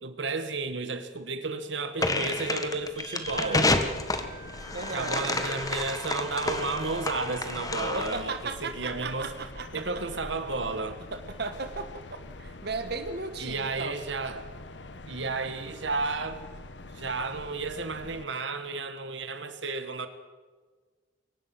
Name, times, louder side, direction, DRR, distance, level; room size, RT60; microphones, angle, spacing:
voice 1, 0.0-3.8 4.9-9.3 9.7-11.0 13.4-14.5 15.1-16.4 16.9-20.1, right 3 dB, 80° right, 9 dB, 1.6 m, -32 dB
sound 1, 2.0-8.3, left 2 dB, 20° left, 1.5 m, -30 dB
sound 2, 3.0-8.0, right 5 dB, 35° right, 6.9 m, -45 dB
sound 3, 3.2-18.2, left 2 dB, 70° left, 1.2 m, -45 dB
voice 2, 4.7-5.5 7.9-9.8 11.1-12.0 12.4-14.0, right 3 dB, 65° right, 8 dB, 1.5 m, -36 dB
23.0 x 18.5 x 6.2 m, 1.4 s
head